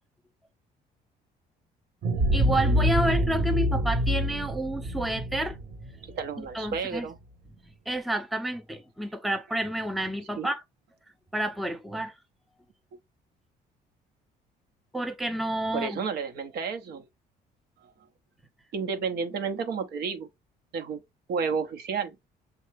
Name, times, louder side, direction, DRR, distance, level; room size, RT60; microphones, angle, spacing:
sound 1, 2.0-6.8, equal, 45° right, 1.0 m, -26 dB
voice 1, 2.3-5.6 6.4-7.1 7.9-10.6 11.3-12.1 14.9-16.0, right 1 dB, ahead, 0.5 m, -30 dB
voice 2, 6.0-7.2 10.4-10.5 15.7-17.0 17.8-17.9 18.7-20.3 20.7-21.0 21.3-22.1, right 5 dB, 70° right, 1.0 m, -31 dB
6.5 x 2.3 x 3.1 m
cardioid pair, 110°, 17 cm